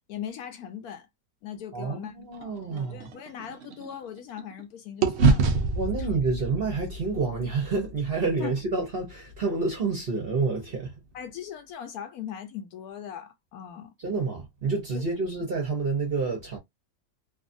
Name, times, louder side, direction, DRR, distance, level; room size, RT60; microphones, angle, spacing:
voice 1, 0.1-1.1 1.4-2.1 2.4-5.6 6.0-6.1 8.4-8.5 11.1-13.9 14.9-15.0, left 9 dB, 70° left, 0.9 m, -39 dB
voice 2, 1.7-3.1 5.7-10.9 14.0-16.6, right 4 dB, 50° right, 0.8 m, -28 dB
sound 1, 2.3-4.6 5.0-9.2, right 4 dB, 80° right, 0.6 m, -28 dB
2.7 x 2.4 x 2.5 m
omnidirectional pair, 1.8 m